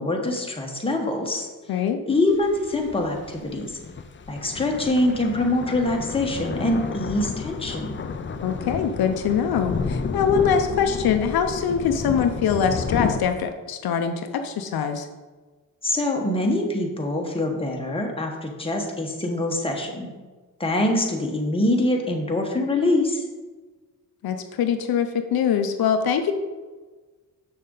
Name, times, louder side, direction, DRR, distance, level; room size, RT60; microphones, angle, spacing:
voice 1, 0.0-1.5 2.1-3.7 4.3-8.0 15.8-20.1 20.6-23.2, left 1 dB, 15° left, 1 dB, 1.2 m, -24 dB
voice 2, 1.7-2.0 8.4-15.1 24.2-26.3, left 7 dB, 80° left, 7 dB, 0.7 m, -23 dB
sound 1, 2.3-13.2, left 5 dB, 35° left, 0.5 m, -31 dB
6.5 x 6.5 x 3.9 m, 1.3 s
cardioid pair, 105°, 36 cm